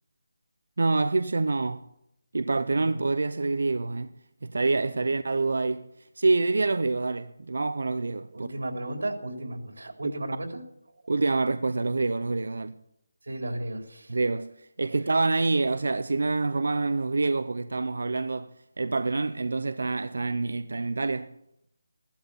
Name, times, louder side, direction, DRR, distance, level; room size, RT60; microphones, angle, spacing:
voice 1, 0.8-1.9 2.3-4.1 4.4-5.9 6.2-8.5 10.0-10.1 11.1-12.8 14.1-21.3, right 3 dB, 70° right, 0.7 m, -26 dB
voice 2, 4.8-5.2 8.3-10.6 13.2-14.2, right 1 dB, 85° right, 3.8 m, -35 dB
17.0 x 12.0 x 7.1 m
figure-of-eight pair, 175°, 0 cm